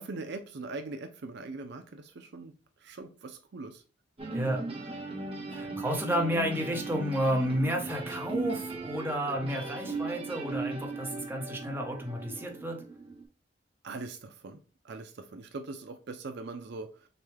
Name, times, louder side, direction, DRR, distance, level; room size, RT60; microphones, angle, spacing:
voice 1, 0.0-2.5 2.8-3.8 13.8-14.6 14.8-17.1, right 3 dB, 65° right, 6 dB, 0.5 m, -41 dB
sound 1, 4.2-13.2, right 3 dB, 30° right, 1.3 m, -38 dB
voice 2, 5.5-12.8, equal, 10° right, 1 dB, 0.9 m, -31 dB
6.6 x 2.3 x 3.2 m, 0.36 s
head